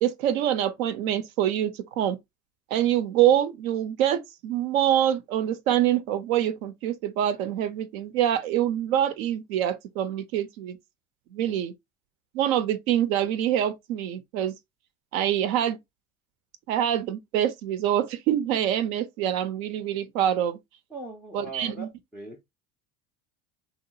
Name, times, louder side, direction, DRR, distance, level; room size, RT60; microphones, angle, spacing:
voice 1, 0.0-2.2 2.7-10.8 11.3-11.7 12.3-14.5 15.1-15.8 16.7-20.6 21.3-21.9, right 11 dB, 70° right, 0.5 m, -25 dB
voice 2, 20.9-21.9 22.1-22.4, right 2 dB, 5° right, 0.3 m, -40 dB
2.8 x 2.3 x 2.6 m
hypercardioid pair, 75°, 42 cm